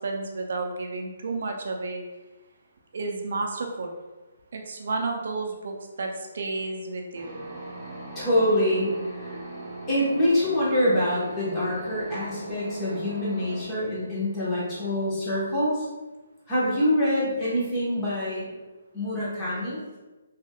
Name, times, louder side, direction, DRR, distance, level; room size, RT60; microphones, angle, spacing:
voice 1, 0.0-2.0 2.9-3.9 4.5-6.1 6.3-7.4, right 3 dB, 60° right, 2 dB, 0.4 m, -31 dB
sound 1, 7.1-13.6, right 1 dB, 15° right, 0.9 m, -39 dB
voice 2, 8.1-9.4 9.9-15.9 16.5-18.5 18.9-19.8, left 1 dB, 20° left, -9 dB, 1.1 m, -25 dB
3.1 x 2.7 x 2.3 m, 1.2 s
hypercardioid pair, 155°, 0 cm